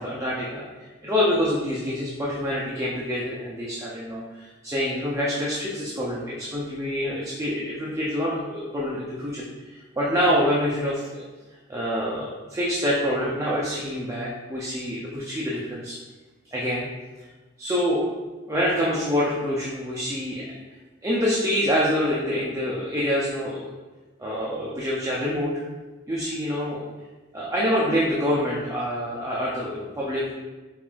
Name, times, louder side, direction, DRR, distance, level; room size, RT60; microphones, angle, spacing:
voice 1, 0.0-11.3 11.7-16.0 16.5-16.9 17.2-17.3 17.6-18.0 18.5-20.5 21.0-23.6 24.2-25.5 26.1-26.9 27.3-30.2, equal, 15° right, -6 dB, 0.5 m, -26 dB
5.3 x 2.4 x 2.4 m, 1.2 s
head